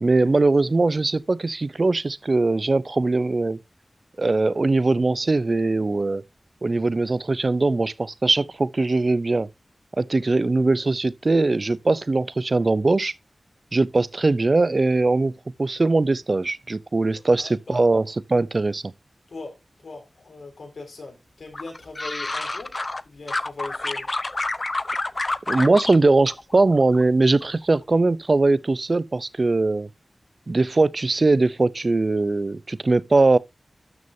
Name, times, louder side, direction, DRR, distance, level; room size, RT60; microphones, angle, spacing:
voice 1, 0.0-3.6 4.2-6.2 6.6-9.5 10.0-13.1 13.7-15.3 15.6-18.8 25.5-29.9 30.5-33.4, right 3 dB, 55° right, 0.6 m, -21 dB
voice 2, 17.3-17.8 19.3-22.7 23.0-24.1, left 3 dB, 90° left, 4.0 m, -39 dB
sound 1, 21.5-23.0 23.3-26.0 26.3-27.0 27.3-27.8, left 2 dB, 45° left, 0.7 m, -28 dB
12.5 x 6.4 x 2.7 m
cardioid pair, 40°, 0 cm